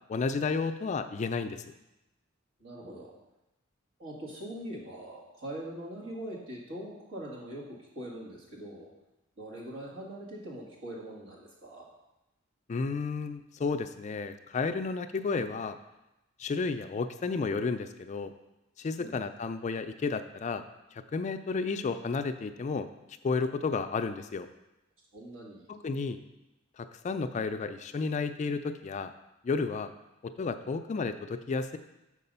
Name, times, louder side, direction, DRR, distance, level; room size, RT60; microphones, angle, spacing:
voice 1, 0.1-1.6 12.7-15.8 16.4-18.3 18.8-20.6 20.9-22.9 23.2-24.5 25.7-26.2 26.8-29.1 29.4-29.9 30.2-31.8, left 4 dB, 35° left, 9 dB, 0.3 m, -32 dB
voice 2, 2.6-3.1 4.0-8.9 9.4-11.9 19.0-19.2 25.1-25.7, right 1 dB, 70° right, -4 dB, 2.2 m, -42 dB
6.6 x 4.9 x 5.4 m, 0.95 s
head